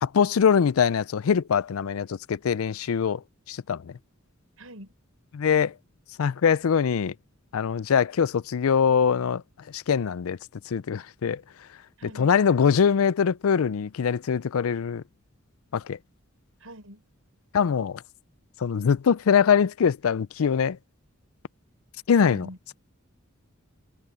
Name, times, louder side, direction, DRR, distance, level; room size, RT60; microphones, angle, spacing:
voice 1, 0.0-3.2 3.5-3.9 5.3-5.7 6.2-7.1 7.5-9.4 9.7-10.4 10.7-11.4 12.0-15.0 15.7-16.0 17.5-18.0 18.6-20.8 22.1-22.5, left 7 dB, 80° left, 0.4 m, -23 dB
voice 2, 4.6-4.9 12.0-12.3 16.6-17.0 22.1-22.6, right 1 dB, 75° right, 6.8 m, -43 dB
head